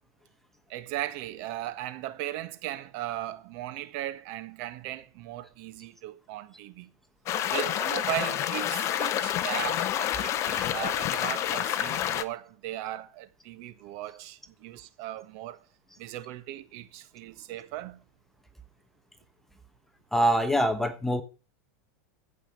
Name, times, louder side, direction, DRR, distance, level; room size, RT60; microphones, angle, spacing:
voice 1, 0.7-6.9 7.5-15.6 16.0-18.0, right 14 dB, 55° right, 1.5 m, -37 dB
sound 1, 7.3-12.2, left 11 dB, 35° left, 1.0 m, -28 dB
voice 2, 20.1-21.2, equal, 5° left, 1.1 m, -24 dB
15.5 x 5.6 x 6.7 m
supercardioid pair, 135°, 9 cm